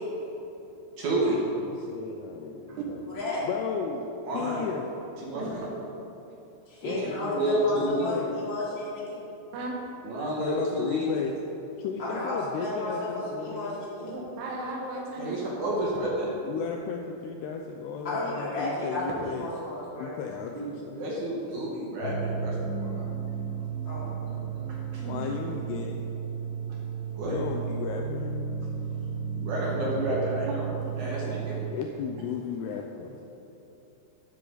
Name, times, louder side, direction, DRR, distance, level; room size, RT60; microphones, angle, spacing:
voice 1, 1.0-1.4 2.7-2.8 4.2-4.6 5.2-5.6 7.2-8.1 10.0-11.1 15.2-16.3 20.5-23.0 24.3-25.0 27.2-27.4 29.3-30.7 31.0-31.6, right 1 dB, 55° right, -5 dB, 2.3 m, -30 dB
voice 2, 1.7-3.0 3.4-4.1 4.3-4.9 6.8-8.4 10.4-11.3 11.8-13.8 16.4-19.5 20.0-21.1 25.1-26.0 27.3-28.3 31.6-33.2, left 6 dB, 85° left, 2 dB, 2.3 m, -35 dB
voice 3, 3.1-3.4 6.7-9.1 12.0-14.1 18.0-20.1 23.8-24.1, left 2 dB, 30° left, -8 dB, 3.1 m, -33 dB
voice 4, 5.3-5.7 9.5-9.8 14.0-15.7 25.0-25.2, right 2 dB, 80° right, -3 dB, 4.1 m, -36 dB
sound 1, 22.0-31.7, right 6 dB, 70° left, 1.2 m, -33 dB
13.0 x 10.5 x 4.0 m, 3.0 s
omnidirectional pair, 5.5 m